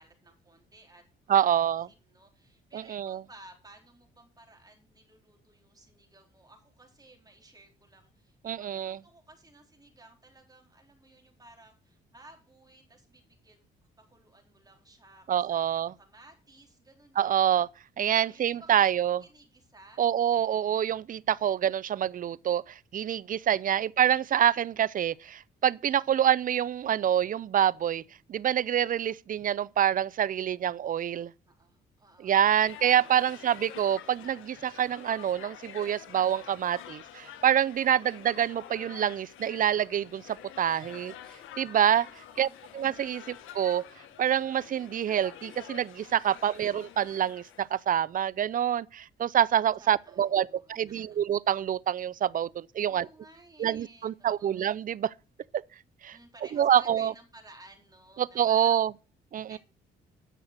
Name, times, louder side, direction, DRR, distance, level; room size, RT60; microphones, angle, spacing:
voice 1, 0.0-13.7 14.0-17.6 18.1-18.8 19.2-20.0 31.5-32.7 33.1-33.6 40.6-41.5 41.9-42.7 43.2-43.3 46.5-46.6 49.8-51.2 52.9-54.6 56.1-58.8 59.5-59.6, right 2 dB, 20° right, 4.1 m, -56 dB
voice 2, 1.3-1.9 2.7-3.2 8.4-9.0 15.3-15.9 17.2-17.7 18.0-19.2 20.0-28.0 28.3-31.3 32.2-41.1 41.6-42.1 42.4-42.5 42.7-43.8 44.2-53.1 53.6-55.1 55.5-55.6 56.0-56.2 56.5-57.1 58.2-58.9 59.3-59.6, right 10 dB, 45° right, 0.5 m, -26 dB
sound 1, 32.6-47.8, left 10 dB, 85° left, 1.4 m, -48 dB
10.0 x 6.4 x 6.2 m
cardioid pair, 90°, 20 cm